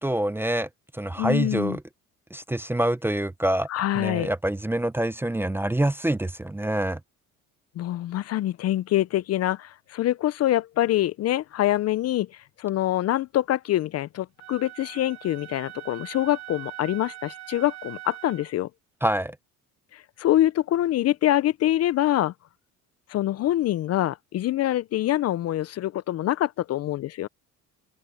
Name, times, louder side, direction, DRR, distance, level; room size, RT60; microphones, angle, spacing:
voice 1, 0.0-1.8 2.3-3.7 3.9-7.0 19.0-19.4, right 1 dB, 5° right, 0.6 m, -26 dB
voice 2, 1.2-1.8 3.7-4.3 7.8-18.7 19.9-22.3 23.1-27.3, left 14 dB, 45° left, 0.5 m, -25 dB
Wind instrument woodwind instrument, 14.4-18.5, right 17 dB, 50° right, 1.4 m, -42 dB
cardioid pair, 105°, 34 cm